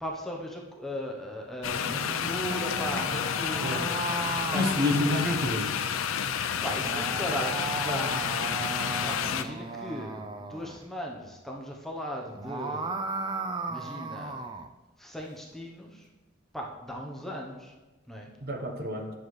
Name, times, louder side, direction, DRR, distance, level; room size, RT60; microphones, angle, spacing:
voice 1, 0.0-3.8 4.5-5.2 6.6-8.3 9.1-13.0 13.7-14.4 15.0-16.1 16.5-17.7 18.1-18.3, equal, ahead, -1 dB, 0.8 m, -37 dB
sound 1, 1.6-9.4, left 8 dB, 85° left, 0.4 m, -30 dB
sound 2, 1.8-5.6 6.6-10.8 12.2-14.7, right 3 dB, 25° right, 0.3 m, -36 dB
voice 2, 4.5-5.8 18.4-19.1, left 1 dB, 50° right, 3 dB, 0.9 m, -28 dB
9.4 x 6.4 x 3.1 m, 1.2 s
head